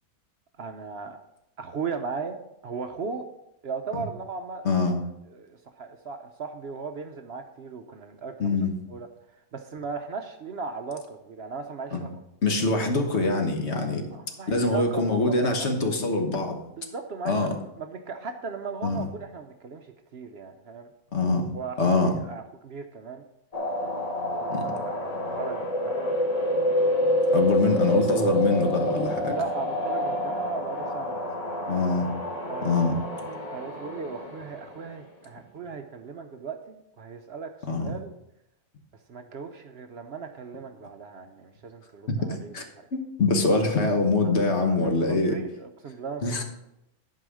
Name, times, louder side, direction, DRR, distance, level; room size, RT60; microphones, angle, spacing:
voice 1, 0.6-1.2 1.6-3.3 3.6-5.0 5.3-12.2 14.1-15.7 16.8-20.9 21.5-23.3 24.4-26.1 28.9-29.0 29.3-31.3 32.5-38.1 39.1-42.9 44.2-46.2, right 5 dB, 55° right, 7 dB, 0.8 m, -37 dB
voice 2, 8.4-8.7 11.9-12.1 12.4-14.0 14.5-16.6 17.2-17.5 18.8-19.0 21.1-21.4 21.8-22.1 24.5-24.7 27.3-29.3 31.7-32.1 32.6-32.9 37.7-37.9 42.1-42.2 42.5-42.6 42.9-45.3 46.2-46.4, left 3 dB, 55° left, 4 dB, 1.5 m, -24 dB
sound 1, 23.5-34.8, left 1 dB, 30° left, 1.5 m, -28 dB
11.5 x 4.8 x 6.3 m, 0.84 s
omnidirectional pair, 1.4 m